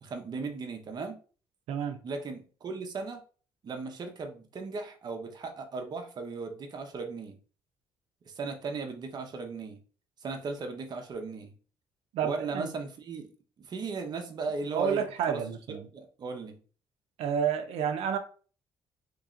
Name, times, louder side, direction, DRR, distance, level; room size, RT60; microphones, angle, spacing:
voice 1, 0.0-1.2 2.0-3.2 3.6-7.4 8.3-9.8 10.2-11.5 12.2-13.3 13.6-15.4 15.7-16.6, right 4 dB, 45° right, 0.8 m, -37 dB
voice 2, 1.7-2.0 12.1-12.7 14.7-15.9 17.2-18.2, right 8 dB, 85° right, 0.6 m, -30 dB
3.0 x 2.8 x 3.7 m
cardioid pair, 115°, 10 cm